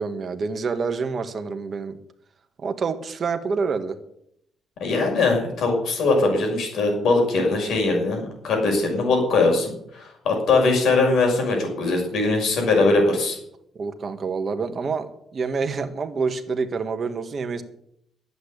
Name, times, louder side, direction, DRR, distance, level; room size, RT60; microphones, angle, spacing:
voice 1, 0.0-2.0 2.6-3.9 13.7-17.6, right 5 dB, 45° right, 7 dB, 1.7 m, -27 dB
voice 2, 4.8-13.4, left 3 dB, 70° left, 1 dB, 6.1 m, -21 dB
11.5 x 8.3 x 8.6 m, 0.73 s
cardioid pair, 90°, 0 cm